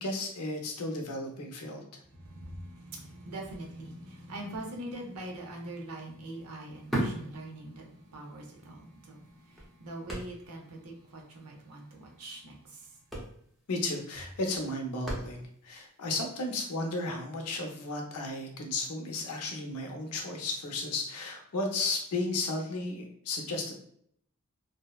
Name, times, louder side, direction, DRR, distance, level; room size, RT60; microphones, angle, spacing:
voice 1, 0.0-1.8 13.7-23.7, left 2 dB, 90° left, 2 dB, 0.6 m, -34 dB
voice 2, 2.3-7.9 8.1-9.3 9.8-12.6, right 1 dB, 90° right, 0 dB, 0.6 m, -42 dB
sound 1, 5.1-5.3 5.5-8.2 8.5-8.6 9.2-10.7 11.0-11.1 11.4-11.6 12.5-12.6 12.9-15.7 16.3-16.4, right 1 dB, ahead, 0.5 m, -37 dB
2.7 x 2.0 x 2.2 m, 0.66 s
head